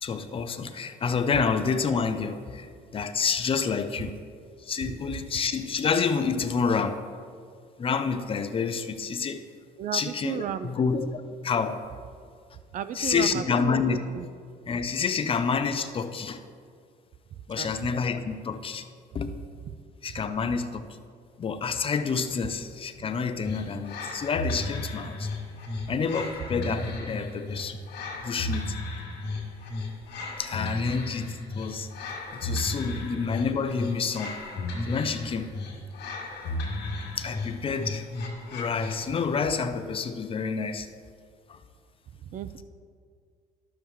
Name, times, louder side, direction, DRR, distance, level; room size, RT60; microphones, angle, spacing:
voice 1, 0.0-4.1 4.6-7.0 7.8-9.5 9.9-11.1 11.4-11.8 12.9-14.0 14.7-16.4 17.5-18.8 19.1-19.4 20.0-20.9 21.4-25.3 25.9-27.8 28.2-28.7 30.4-31.9 32.3-34.4 34.9-35.5 36.5-36.6 37.2-38.1 38.5-40.9 41.5-41.6, left 5 dB, 35° left, 10 dB, 0.6 m, -28 dB
voice 2, 9.8-10.7 12.7-14.3 17.6-17.7 42.2-42.6, right 8 dB, 50° right, 12 dB, 0.5 m, -34 dB
sound 1, 23.4-39.3, left 2 dB, 80° left, 1.9 m, -34 dB
12.0 x 7.0 x 3.1 m, 2.1 s
cardioid pair, 110°, 17 cm